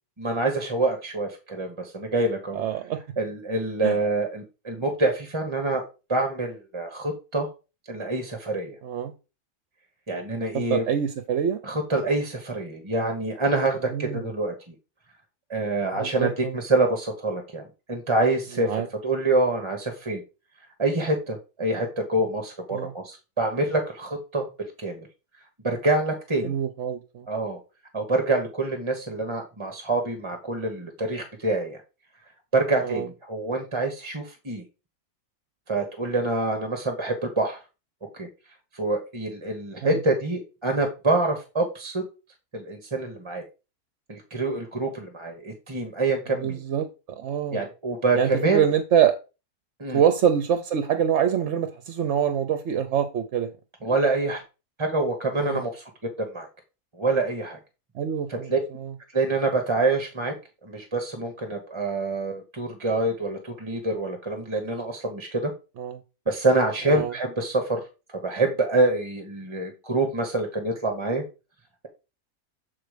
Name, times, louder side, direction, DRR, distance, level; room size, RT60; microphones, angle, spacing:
voice 1, 0.2-2.6 3.2-5.8 6.1-7.5 7.9-8.7 10.1-10.8 11.6-14.7 15.5-17.6 17.9-18.7 19.0-20.2 20.8-25.1 25.6-26.5 27.3-27.6 27.9-31.8 32.5-34.6 35.7-37.6 38.1-38.3 38.7-42.0 42.5-43.4 44.1-46.6 47.5-48.6 49.8-50.0 53.8-54.4 54.8-55.8 56.3-56.5 57.0-57.6 58.3-58.6 59.1-60.3 60.6-65.5 66.3-67.8 68.2-71.2, right 2 dB, 20° right, 5 dB, 1.0 m, -26 dB
voice 2, 2.5-3.0 3.8-4.0 8.8-9.1 10.5-11.6 13.9-14.3 15.9-16.6 18.6-18.9 22.7-22.9 26.4-27.3 32.8-33.1 39.8-40.0 46.4-47.7 48.1-49.1 49.9-53.5 55.4-55.6 57.9-58.9 65.8-66.0 66.9-67.1, right 9 dB, 60° right, 10 dB, 0.9 m, -25 dB
7.8 x 4.1 x 5.0 m, 0.30 s
omnidirectional pair, 1.5 m